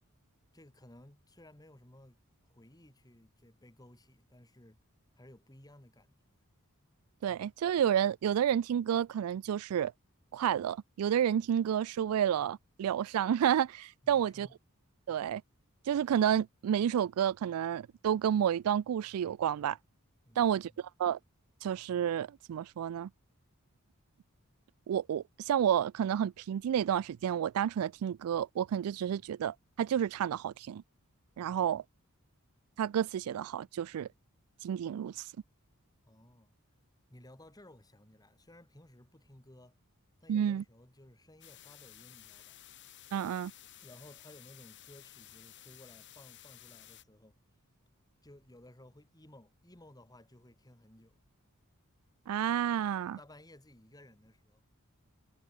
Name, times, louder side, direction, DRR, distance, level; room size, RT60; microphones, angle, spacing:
voice 1, 0.5-2.2 2.5-4.8 5.2-6.4 14.0-14.5 20.2-20.8 36.0-36.6 37.1-39.8 40.2-42.6 43.8-47.4 48.2-51.2 53.0-54.6, left 1 dB, 15° left, 2.6 m, -57 dB
voice 2, 7.2-9.9 10.3-14.5 15.1-15.4 15.9-19.8 20.4-20.7 21.0-21.2 21.6-23.1 24.9-30.8 31.4-31.8 32.8-34.1 34.6-35.3 40.3-40.6 43.1-43.5 52.3-53.2, right 9 dB, 80° right, 0.3 m, -30 dB
sound 1, 41.4-47.0, left 12 dB, 55° left, 5.7 m, -54 dB
head